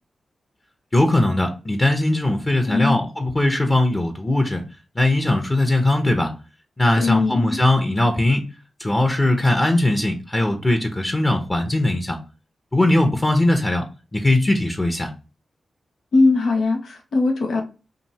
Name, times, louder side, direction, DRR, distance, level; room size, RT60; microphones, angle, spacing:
voice 1, 0.9-4.6 4.9-6.3 6.8-8.4 8.8-12.2 12.7-13.8 14.1-15.1, left 1 dB, 25° left, 5 dB, 0.9 m, -20 dB
voice 2, 2.7-3.0 6.9-7.6 16.1-17.6, left 3 dB, 80° left, 3 dB, 1.0 m, -20 dB
5.2 x 2.7 x 2.9 m, 0.33 s
cardioid pair, 50°, 0 cm